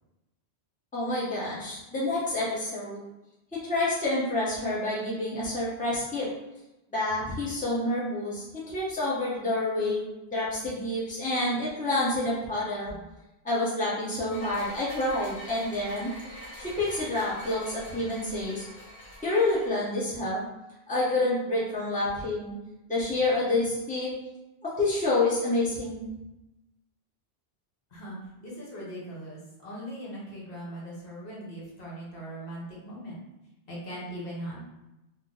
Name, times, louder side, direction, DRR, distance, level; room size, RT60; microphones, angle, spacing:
voice 1, 0.9-3.1 3.5-6.3 6.9-10.0 10.3-13.0 13.4-16.1 16.6-18.6 19.2-20.4 20.9-22.5 22.9-24.1 24.6-26.0, left 2 dB, 10° left, -7 dB, 0.8 m, -28 dB
sound 1, 14.3-19.7, equal, 40° left, 1.0 m, -44 dB
voice 2, 27.9-33.2 33.7-34.6, right 1 dB, 65° left, -6 dB, 1.2 m, -40 dB
2.9 x 2.1 x 3.8 m, 0.95 s
omnidirectional pair, 1.1 m